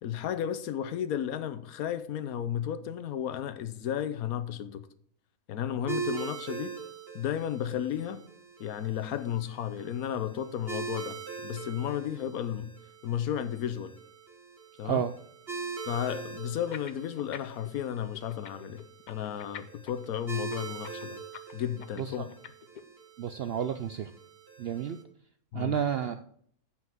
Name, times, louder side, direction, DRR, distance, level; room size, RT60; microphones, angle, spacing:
voice 1, 0.0-4.9 5.5-6.8 7.1-8.3 8.6-12.7 13.0-14.0 14.8-15.0 15.8-21.2 21.5-22.3 25.5-25.7, left 10 dB, 80° left, 1.2 m, -33 dB
sound 1, 5.9-25.0, right 5 dB, 45° right, 1.8 m, -42 dB
sound 2, 16.6-17.7 18.0-22.8, left 7 dB, 55° left, 0.5 m, -45 dB
voice 2, 23.2-24.1 24.6-25.0 25.5-26.3, right 8 dB, 70° right, 0.5 m, -31 dB
7.8 x 5.8 x 6.0 m
omnidirectional pair, 1.5 m